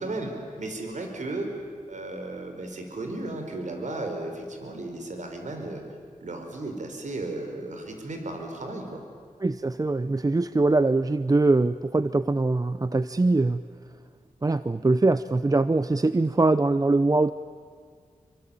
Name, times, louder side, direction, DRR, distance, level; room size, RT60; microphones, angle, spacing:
voice 1, 0.0-1.5 1.9-5.8 6.2-9.0, right 2 dB, 65° right, 4 dB, 4.6 m, -34 dB
voice 2, 9.4-13.6 14.4-17.3, right 2 dB, 25° right, 13 dB, 0.6 m, -22 dB
27.0 x 25.0 x 8.9 m, 2.1 s
cardioid pair, 65°, 13 cm